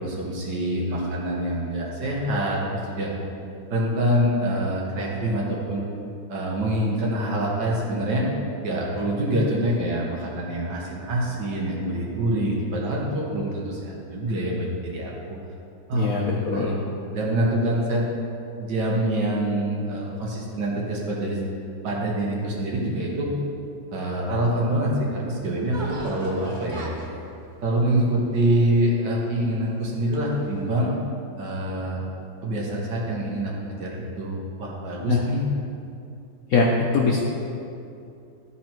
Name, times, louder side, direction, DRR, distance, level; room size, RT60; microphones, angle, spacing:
voice 1, 0.0-3.1 3.7-5.9 6.3-8.3 8.6-15.4 15.9-16.8 17.1-18.0 18.6-21.4 21.8-23.3 23.9-26.9 27.6-30.9 31.4-32.0 32.4-35.4, right 1 dB, 60° right, -3 dB, 1.8 m, -25 dB
voice 2, 15.9-16.8 35.1-35.2 36.5-37.2, left 4 dB, 65° left, -2 dB, 0.9 m, -22 dB
sound 1, 25.7-29.3 29.8-30.6, right 2 dB, 40° right, 0.7 m, -41 dB
12.5 x 4.3 x 4.5 m, 2.6 s
omnidirectional pair, 2.2 m